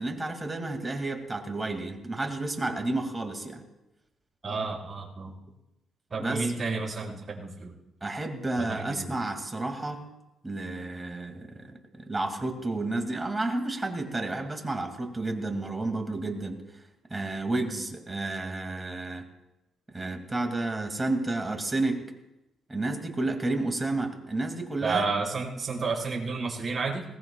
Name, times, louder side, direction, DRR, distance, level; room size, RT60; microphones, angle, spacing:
voice 1, 0.0-3.6 6.2-6.5 8.0-10.0 10.4-16.6 17.1-19.2 19.9-22.1 22.7-25.1, right 2 dB, 20° right, 4 dB, 2.5 m, -31 dB
voice 2, 4.4-5.3 6.1-7.7 8.6-9.1 24.8-27.0, right 4 dB, 35° right, -3 dB, 4.8 m, -31 dB
20.5 x 18.5 x 2.4 m, 0.94 s
cardioid pair, 90°, 0 cm